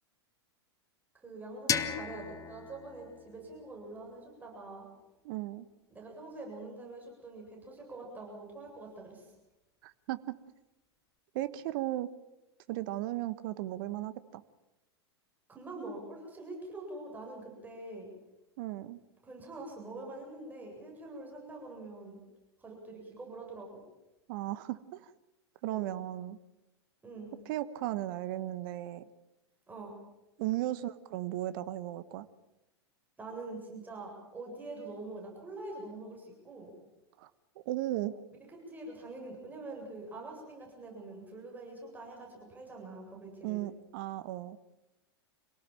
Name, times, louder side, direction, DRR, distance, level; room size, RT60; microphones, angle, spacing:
voice 1, 1.1-4.9 5.9-9.3 15.5-18.1 19.2-22.2 22.6-23.7 25.7-25.9 27.0-27.3 29.7-29.9 33.2-36.7 38.7-43.6, right 2 dB, 10° right, -1 dB, 8.0 m, -45 dB
sound 1, 1.7-4.5, left 8 dB, 25° left, 1.3 m, -37 dB
voice 2, 5.2-5.7 9.8-10.4 11.3-12.1 12.7-14.4 18.6-19.0 24.3-25.1 25.6-26.4 27.4-29.0 30.4-32.3 37.2-37.3 37.6-38.2 43.4-44.6, right 15 dB, 50° right, 14 dB, 1.3 m, -36 dB
26.5 x 18.0 x 7.5 m, 0.96 s
figure-of-eight pair, 95°, 14 cm